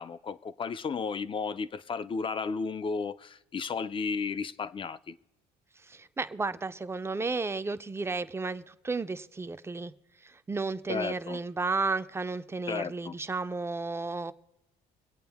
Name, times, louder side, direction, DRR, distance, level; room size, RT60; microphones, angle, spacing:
voice 1, 0.0-5.1 10.9-11.4 12.7-13.1, left 5 dB, 30° left, 0.5 m, -33 dB
voice 2, 5.9-9.9 10.2-14.3, right 3 dB, 15° right, 0.6 m, -33 dB
25.0 x 8.6 x 3.5 m
cardioid pair, 110°, 17 cm